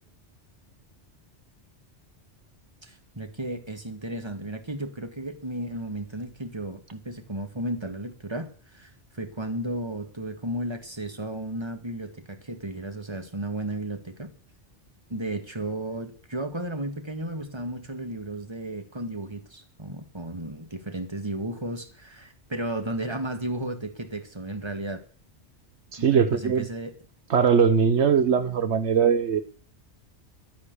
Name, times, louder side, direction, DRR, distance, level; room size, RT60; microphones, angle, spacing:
voice 1, 2.8-14.3 15.1-25.0 26.0-26.9, right 1 dB, 25° right, 6 dB, 2.1 m, -34 dB
voice 2, 25.9-26.7 27.3-29.4, right 7 dB, 75° right, 11 dB, 1.2 m, -21 dB
12.0 x 10.0 x 8.3 m, 0.43 s
omnidirectional pair, 1.2 m